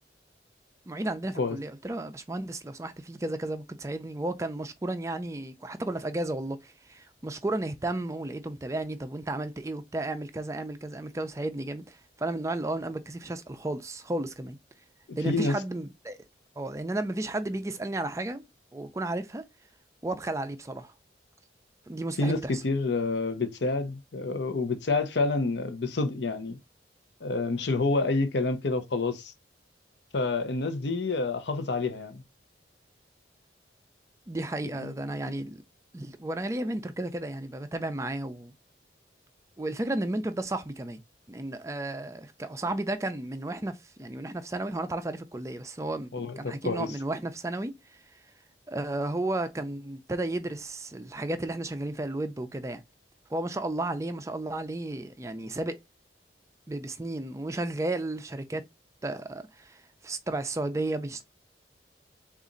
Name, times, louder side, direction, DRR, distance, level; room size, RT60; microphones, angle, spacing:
voice 1, 0.9-14.6 15.2-16.2 16.6-18.4 18.7-19.4 20.0-20.9 21.9-22.6 34.3-35.6 35.9-38.5 39.6-41.0 41.3-47.7 48.7-52.8 53.3-55.8 56.7-58.7 59.0-61.2, right 2 dB, 15° right, 0.4 m, -33 dB
voice 2, 22.2-26.6 27.2-29.3 30.1-32.2 34.8-34.9 46.1-46.9, left 3 dB, 75° left, 0.7 m, -28 dB
4.0 x 2.4 x 3.7 m
head